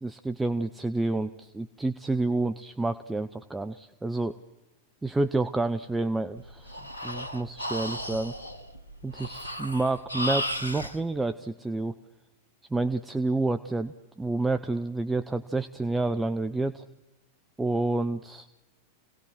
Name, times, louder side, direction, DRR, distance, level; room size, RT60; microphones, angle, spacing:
voice 1, 0.0-4.4 5.0-8.3 9.0-12.0 12.7-16.8 17.6-18.5, right 2 dB, 10° right, 9 dB, 0.7 m, -29 dB
Breathing, 6.4-11.0, left 1 dB, 85° left, 1.2 m, -34 dB
27.0 x 18.0 x 6.2 m, 1.1 s
figure-of-eight pair, 90°, 0 cm